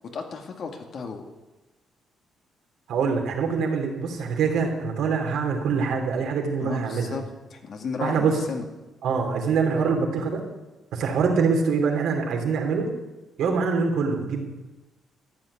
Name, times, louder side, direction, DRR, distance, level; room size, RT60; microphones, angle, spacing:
voice 1, 0.1-1.3 6.6-7.2 7.5-8.7, left 5 dB, 60° left, 3 dB, 2.0 m, -33 dB
voice 2, 2.9-7.2 8.0-8.4 9.0-10.4 10.9-12.9 13.4-14.4, right 5 dB, 80° right, 2 dB, 2.8 m, -24 dB
14.0 x 6.1 x 9.9 m, 1.1 s
cardioid pair, 90°, 0 cm